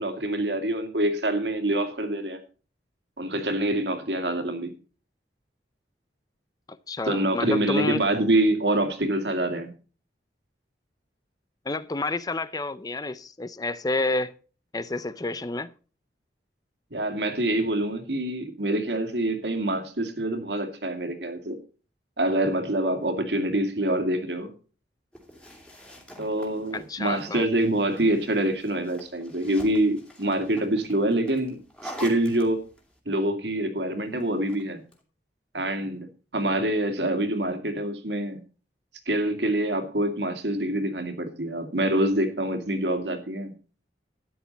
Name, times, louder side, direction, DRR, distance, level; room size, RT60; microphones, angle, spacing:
voice 1, 0.0-2.4 3.2-4.7 7.0-9.7 16.9-21.6 22.2-24.5 26.2-32.6 33.1-34.8 35.5-38.4 39.1-43.5, right 1 dB, 70° right, 2.2 m, -26 dB
voice 2, 6.7-8.1 11.7-14.3 14.7-15.7 26.7-27.5, left 2 dB, 20° left, 0.5 m, -29 dB
sound 1, 25.1-33.0 34.2-35.0, equal, 5° left, 2.7 m, -46 dB
13.0 x 10.0 x 4.1 m
head